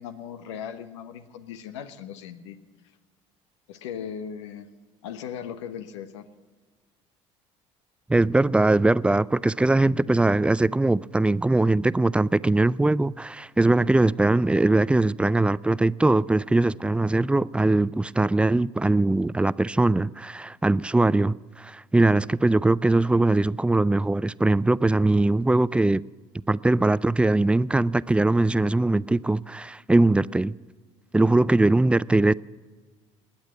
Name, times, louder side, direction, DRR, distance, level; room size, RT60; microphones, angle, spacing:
voice 1, 0.0-2.6 3.7-4.7 5.0-6.3, left 8 dB, 90° left, 1.1 m, -38 dB
voice 2, 8.1-26.0 26.5-30.6 31.1-32.3, right 2 dB, 5° right, 0.4 m, -21 dB
20.5 x 8.9 x 7.5 m
hypercardioid pair, 75°, 15 cm